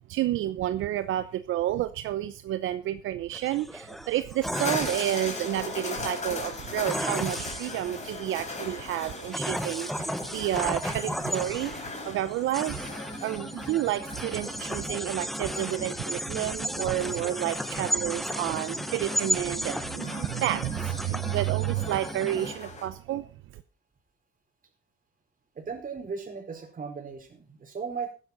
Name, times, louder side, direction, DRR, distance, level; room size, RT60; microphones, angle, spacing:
voice 1, 0.1-23.3 23.5-23.6, right 13 dB, 85° right, 12 dB, 0.8 m, -30 dB
sound 1, 3.3-22.5, equal, ahead, 0.9 m, -34 dB
sound 2, 4.5-22.9, left 3 dB, 35° left, 4.3 m, -40 dB
voice 2, 25.5-28.1, right 5 dB, 45° right, 3 dB, 4.6 m, -37 dB
14.5 x 11.0 x 4.0 m, 0.35 s
cardioid pair, 90°, 20 cm